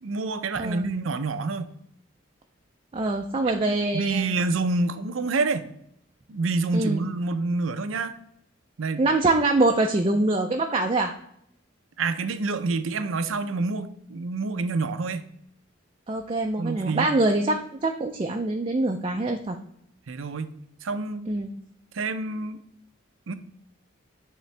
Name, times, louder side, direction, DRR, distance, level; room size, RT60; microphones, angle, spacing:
voice 1, 0.0-1.7 3.5-3.6 3.9-5.7 6.3-8.1 8.8-9.1 12.0-15.3 16.6-17.1 20.1-21.3 21.9-22.6 23.3-23.4, right 3 dB, 85° right, 11 dB, 0.6 m, -27 dB
voice 2, 2.9-4.3 6.7-7.0 9.0-11.1 16.1-19.6 21.3-21.6, right 2 dB, 25° right, 3 dB, 0.4 m, -24 dB
9.2 x 3.8 x 3.3 m, 0.72 s
head